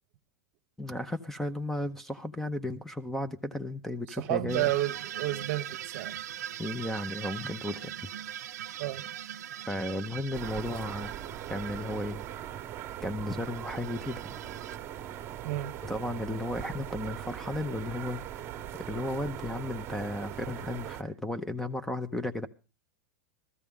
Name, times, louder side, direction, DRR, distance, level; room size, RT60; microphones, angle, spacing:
voice 1, 0.8-4.7 6.6-7.9 9.7-11.1 11.5-12.2 13.0-14.2 15.8-18.6 18.9-22.5, left 1 dB, 5° left, 0.6 m, -34 dB
voice 2, 4.2-6.2 8.8-9.0 15.4-15.7, right 15 dB, 55° right, 0.8 m, -31 dB
sound 1, 4.5-12.3 13.4-14.8, right 11 dB, 85° right, 0.6 m, -41 dB
sound 2, 10.3-21.0, right 11 dB, 30° right, 1.0 m, -40 dB
15.0 x 13.5 x 3.6 m
supercardioid pair, 140°, 9 cm